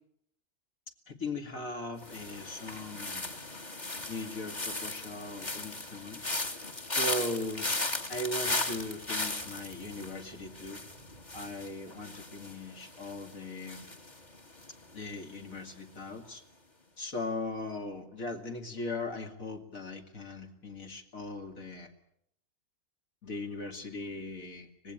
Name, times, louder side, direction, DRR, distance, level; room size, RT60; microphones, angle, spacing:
voice 1, 1.1-3.4 4.1-6.3 6.9-7.8 8.1-10.8 11.3-13.9 14.9-16.4 17.0-21.9 23.2-24.9, left 2 dB, 65° left, 3 dB, 2.8 m, -39 dB
sound 1, 2.0-15.1 15.3-15.8, left 2 dB, 30° left, 2.0 m, -37 dB
25.0 x 19.5 x 8.9 m, 0.71 s
omnidirectional pair, 1.6 m